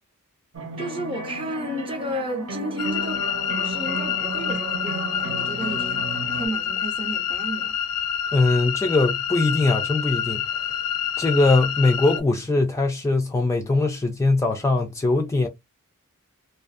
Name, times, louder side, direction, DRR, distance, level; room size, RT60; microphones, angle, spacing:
sound 1, 0.5-6.5, right 2 dB, 70° right, 1.0 m, -33 dB
voice 1, 0.8-7.8, right 1 dB, 25° right, 0.7 m, -33 dB
sound 2, 2.8-12.2, left 9 dB, 70° left, 0.5 m, -27 dB
voice 2, 8.3-10.6 11.2-15.5, left 2 dB, 15° left, 0.3 m, -21 dB
2.6 x 2.5 x 2.4 m
head